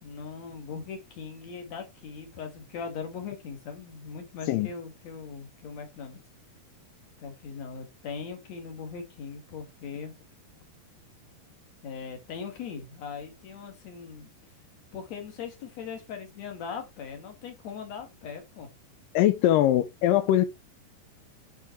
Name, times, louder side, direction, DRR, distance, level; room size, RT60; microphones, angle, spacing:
voice 1, 0.0-6.2 7.2-10.1 11.8-14.3 14.9-18.7, left 6 dB, 45° left, 3.1 m, -40 dB
voice 2, 19.1-20.5, left 13 dB, 80° left, 2.0 m, -22 dB
9.6 x 6.3 x 4.5 m
omnidirectional pair, 4.8 m